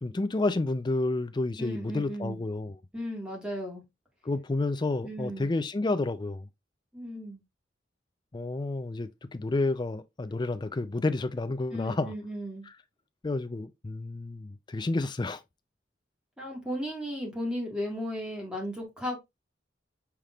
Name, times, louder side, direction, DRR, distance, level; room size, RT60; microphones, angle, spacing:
voice 1, 0.0-2.7 4.2-6.5 8.3-12.1 13.2-15.4, left 2 dB, 25° left, 0.4 m, -30 dB
voice 2, 1.6-2.4 2.9-3.8 5.0-5.5 6.9-7.4 11.7-12.6 16.4-19.2, equal, 5° right, 1.5 m, -35 dB
5.8 x 3.4 x 2.4 m
head